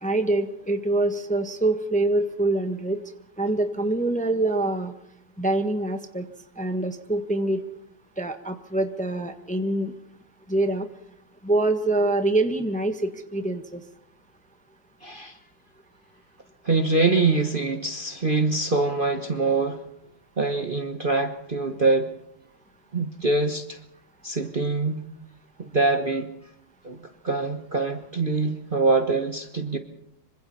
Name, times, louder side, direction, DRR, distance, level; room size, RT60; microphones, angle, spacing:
voice 1, 0.0-3.0 3.4-4.9 5.4-6.2 6.6-7.6 8.2-9.9 10.5-10.9 11.4-13.8, right 2 dB, 5° left, 7 dB, 1.2 m, -25 dB
voice 2, 15.0-15.3 16.6-19.8 20.4-22.1 22.9-23.8 24.2-25.0 25.6-26.3 26.8-29.8, right 3 dB, 30° right, 5 dB, 1.2 m, -24 dB
26.5 x 24.5 x 4.3 m, 0.79 s
omnidirectional pair, 2.0 m